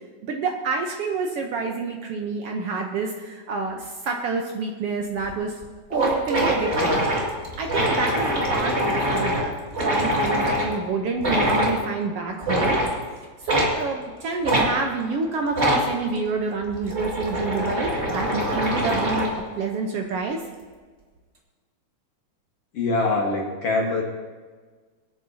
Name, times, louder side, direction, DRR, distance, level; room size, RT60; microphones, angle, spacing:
voice 1, 0.2-5.6 5.9-7.0 7.6-12.8 13.1-19.3 19.6-20.4, right 4 dB, 80° right, 2 dB, 1.3 m, -28 dB
sound 1, 5.2-5.3 5.6-5.7 5.9-10.7 11.2-11.8 12.4-12.9 13.5-13.7 14.4-14.7 15.5-15.9 16.6-19.4, equal, 25° right, 2.0 m, -24 dB
voice 2, 22.7-24.0, left 3 dB, 55° left, -1 dB, 2.1 m, -23 dB
24.0 x 9.5 x 2.8 m, 1.4 s
omnidirectional pair, 3.9 m